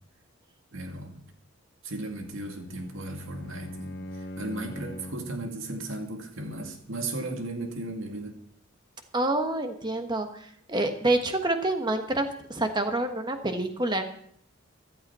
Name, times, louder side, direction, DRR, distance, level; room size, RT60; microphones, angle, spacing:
voice 1, 0.7-1.3 1.8-8.4, right 2 dB, 75° right, 4 dB, 2.2 m, -36 dB
Bowed string instrument, 2.2-5.4, equal, 55° left, 1.2 m, -41 dB
voice 2, 9.1-14.0, right 2 dB, 20° right, 6 dB, 1.3 m, -27 dB
15.0 x 12.0 x 4.3 m, 0.65 s
head